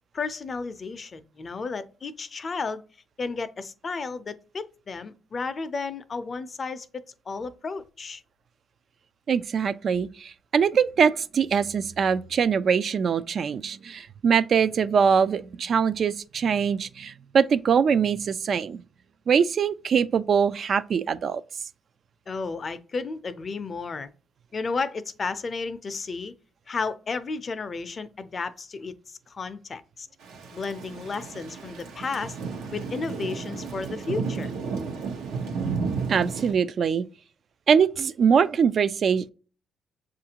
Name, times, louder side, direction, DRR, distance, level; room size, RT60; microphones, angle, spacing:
voice 1, 0.1-2.8 3.2-6.9 7.3-8.2 22.3-24.1 24.5-26.3 26.7-30.1 30.5-32.4 32.7-34.5, left 4 dB, 40° left, 0.5 m, -33 dB
voice 2, 9.3-18.8 19.3-21.4 36.1-37.0 37.7-39.3, right 6 dB, 55° right, 0.3 m, -23 dB
Thunder / Rain, 30.2-36.5, right 5 dB, 90° right, 0.8 m, -33 dB
6.9 x 2.5 x 2.8 m
cardioid pair, 90°, 0 cm